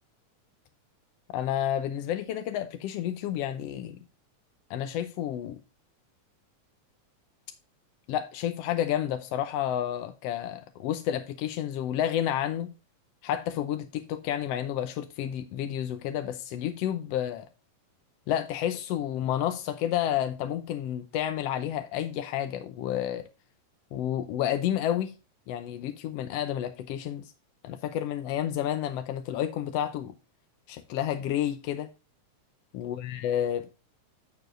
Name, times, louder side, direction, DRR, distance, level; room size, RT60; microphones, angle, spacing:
voice 1, 1.3-4.0 4.7-5.6 8.1-12.7 13.2-17.5 18.3-23.3 23.9-25.1 25.5-27.3 27.6-30.1 30.7-31.9 32.7-33.7, left 10 dB, 75° left, 1.5 m, -30 dB
11.0 x 6.9 x 2.5 m
omnidirectional pair, 3.4 m